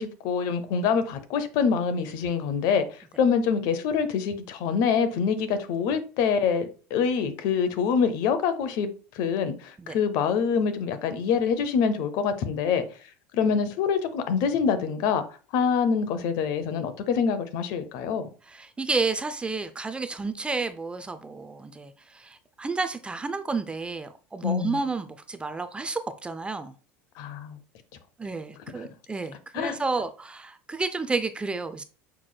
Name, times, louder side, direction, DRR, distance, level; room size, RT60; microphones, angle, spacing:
voice 1, 0.0-8.9 9.1-12.8 13.3-15.2 15.5-18.3 24.4-24.8 27.2-27.6 28.7-28.9 29.5-29.8, left 6 dB, 60° left, 0.7 m, -25 dB
voice 2, 18.5-26.7 28.2-31.8, right 3 dB, 15° right, 0.4 m, -31 dB
5.9 x 3.1 x 2.2 m
supercardioid pair, 100°, 7 cm